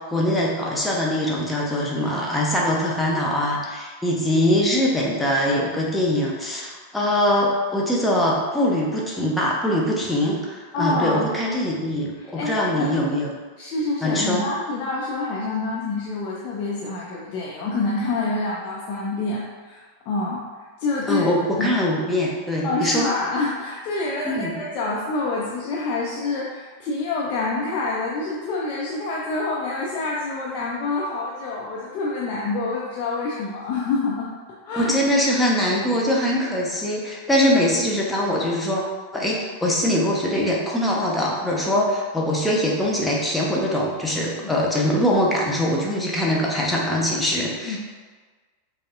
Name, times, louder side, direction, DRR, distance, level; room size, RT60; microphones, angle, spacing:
voice 1, 0.0-13.3 14.0-14.4 21.1-23.1 24.2-24.5 34.7-38.8 39.1-47.8, left 1 dB, 5° left, -4 dB, 0.7 m, -22 dB
voice 2, 10.7-11.3 12.4-12.9 13.6-20.4 20.8-21.3 21.6-21.7 22.6-34.3 34.6-34.9 44.4-44.5 47.7-47.8, left 3 dB, 40° left, -5 dB, 0.5 m, -27 dB
5.1 x 2.0 x 2.5 m, 1.4 s
figure-of-eight pair, 90°, 0 cm